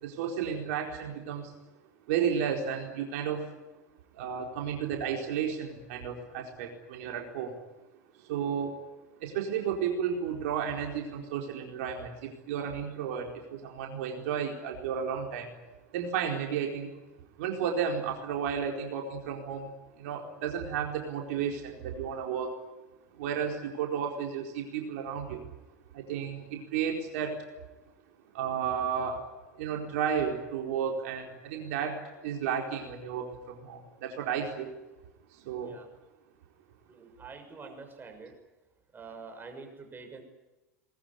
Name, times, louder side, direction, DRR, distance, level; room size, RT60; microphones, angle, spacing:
voice 1, 0.0-1.5 2.1-3.5 4.1-7.5 8.1-8.8 9.2-15.5 15.9-16.9 17.4-22.6 23.2-25.5 25.9-27.5 28.3-29.2 29.6-34.8 35.3-35.7, right 7 dB, 65° right, 1 dB, 4.4 m, -33 dB
voice 2, 36.9-38.3 38.9-40.2, right 4 dB, 25° right, 5 dB, 6.6 m, -46 dB
22.0 x 21.0 x 9.8 m, 1.1 s
hypercardioid pair, 85°, 9 cm